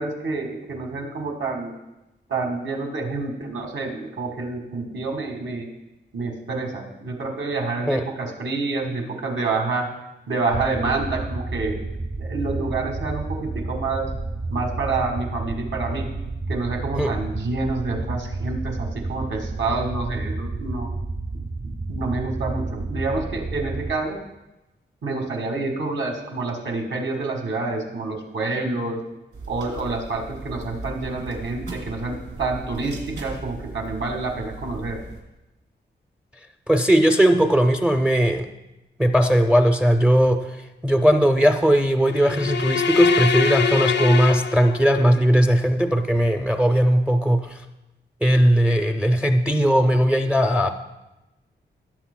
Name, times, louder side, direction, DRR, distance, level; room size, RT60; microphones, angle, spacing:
voice 1, 0.0-1.7 2.3-5.7 6.1-9.8 10.3-11.8 12.2-14.1 14.5-16.1 16.5-20.9 21.6-24.2 25.0-29.0 29.5-35.0, right 3 dB, 80° right, 1 dB, 1.7 m, -28 dB
sound 1, 10.5-23.9, right 3 dB, 35° right, 0.8 m, -31 dB
sound 2, 29.3-35.2, right 2 dB, 60° right, 2.8 m, -37 dB
voice 2, 36.7-38.5 39.0-40.6 40.8-47.6 48.2-50.7, equal, 5° right, 5 dB, 0.4 m, -18 dB
sound 3, 42.1-45.2, left 5 dB, 60° left, 0.5 m, -23 dB
17.0 x 7.7 x 2.2 m, 0.97 s
wide cardioid pair, 170°, 20 cm